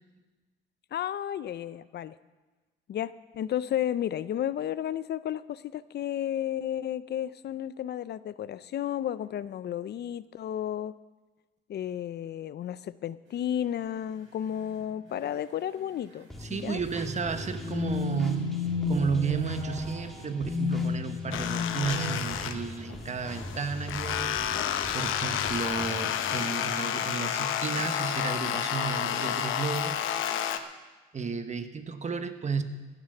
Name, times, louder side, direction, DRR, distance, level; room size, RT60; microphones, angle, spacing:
voice 1, 0.9-2.2 2.9-10.9 11.7-16.8, left 10 dB, 55° left, 16 dB, 0.5 m, -33 dB
sound 1, 13.4-13.5 14.5-14.8 15.1-15.2 15.6-15.9 16.8-22.5, left 3 dB, 75° right, 4.6 m, -33 dB
sound 2, 16.3-26.4, left 1 dB, ahead, 2.3 m, -42 dB
voice 2, 16.4-30.0 31.1-32.6, right 5 dB, 35° right, 9 dB, 1.2 m, -33 dB
sound 3, 21.3-22.9 23.2-30.6, left 9 dB, 85° left, 0.9 m, -30 dB
16.0 x 9.4 x 6.6 m, 1.2 s
cardioid pair, 90°, 20 cm